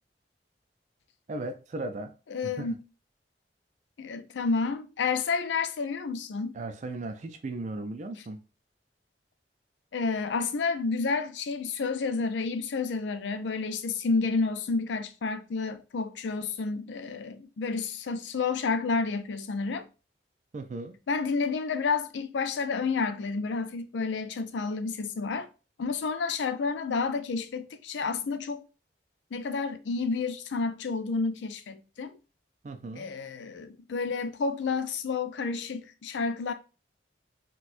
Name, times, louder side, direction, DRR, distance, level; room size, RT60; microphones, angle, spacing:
voice 1, 1.3-2.1 2.4-2.8 6.5-8.4 20.5-21.0 32.6-33.1, right 2 dB, 40° right, 0.4 m, -36 dB
voice 2, 2.3-2.8 4.0-6.6 9.9-19.9 21.1-25.5 25.8-28.6 29.3-32.1 33.0-36.5, left 4 dB, 85° left, 0.4 m, -30 dB
4.2 x 2.2 x 2.5 m
head